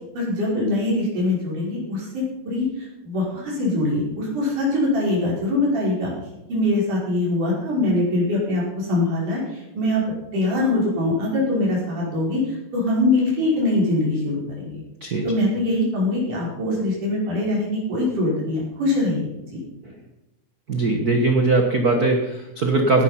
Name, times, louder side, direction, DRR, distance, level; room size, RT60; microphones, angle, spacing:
voice 1, 0.1-6.1 6.5-14.8 15.2-19.6, left 2 dB, 70° right, -4 dB, 6.7 m, -23 dB
voice 2, 20.7-23.0, right 3 dB, 55° right, 3 dB, 1.1 m, -20 dB
17.0 x 10.5 x 5.7 m, 0.95 s
omnidirectional pair, 3.7 m